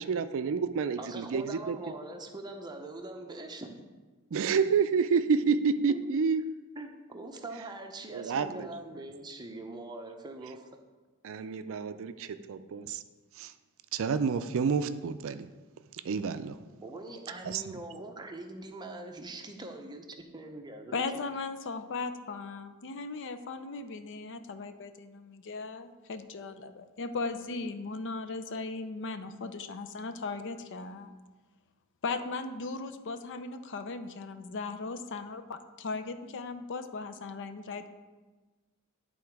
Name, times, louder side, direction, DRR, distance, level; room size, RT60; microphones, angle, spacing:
voice 1, 0.0-1.8 4.3-6.4 8.1-8.7 11.2-13.0 13.3-13.5 13.9-15.5 16.0-16.6 17.4-17.8, right 5 dB, 60° right, 10 dB, 0.4 m, -29 dB
voice 2, 1.0-3.8 5.9-6.2 6.8-10.6 16.7-21.0, right 2 dB, 20° right, 4 dB, 0.7 m, -42 dB
voice 3, 20.9-31.2 32.0-37.9, left 3 dB, 55° left, 9 dB, 0.5 m, -37 dB
10.5 x 3.8 x 4.6 m, 1.3 s
head